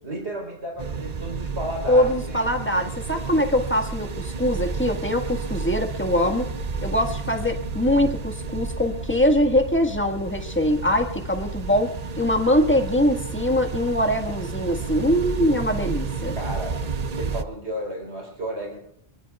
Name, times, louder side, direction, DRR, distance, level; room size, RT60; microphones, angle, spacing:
voice 1, 0.0-2.4 16.4-16.8 17.1-18.8, equal, 80° right, 1 dB, 4.4 m, -33 dB
sound 1, 0.8-17.4, right 5 dB, 40° right, 0.7 m, -31 dB
voice 2, 1.9-6.5 6.8-16.4, left 1 dB, 10° left, 3 dB, 1.7 m, -23 dB
sound 2, 5.2-17.6, left 1 dB, 45° left, 6.5 m, -42 dB
23.5 x 22.0 x 2.4 m, 0.75 s
omnidirectional pair, 1.1 m